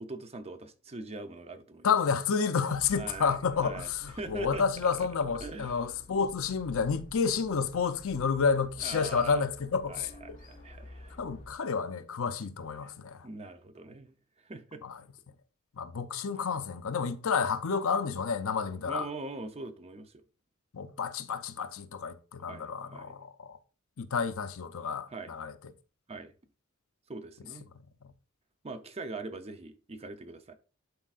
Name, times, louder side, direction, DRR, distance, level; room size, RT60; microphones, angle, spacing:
voice 1, 0.0-1.9 3.0-5.1 5.4-5.8 8.8-9.4 9.9-11.2 12.8-12.9 13.2-14.2 14.4-14.8 16.3-16.4 18.7-20.2 22.5-23.1 25.1-25.3 26.1-26.3 27.1-27.7 28.6-30.6, right 3 dB, 30° right, 0.6 m, -42 dB
voice 2, 1.8-10.4 11.2-13.3 14.8-15.0 15.8-19.1 20.7-23.6 24.0-25.5, left 5 dB, 65° left, 0.6 m, -30 dB
sound 1, 2.7-11.5, left 1 dB, 35° left, 1.3 m, -50 dB
11.5 x 4.5 x 2.5 m
head